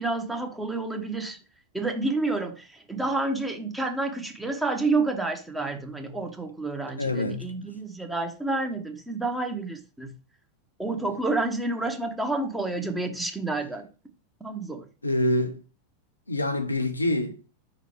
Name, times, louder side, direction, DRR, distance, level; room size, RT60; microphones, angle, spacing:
voice 1, 0.0-1.4 1.7-10.1 10.8-13.9 14.4-14.9, right 2 dB, 5° right, 1.0 m, -29 dB
voice 2, 7.0-7.4 15.0-15.6 16.3-17.4, left 1 dB, 80° left, 0.7 m, -26 dB
5.5 x 4.1 x 4.5 m
figure-of-eight pair, 90°, 0 cm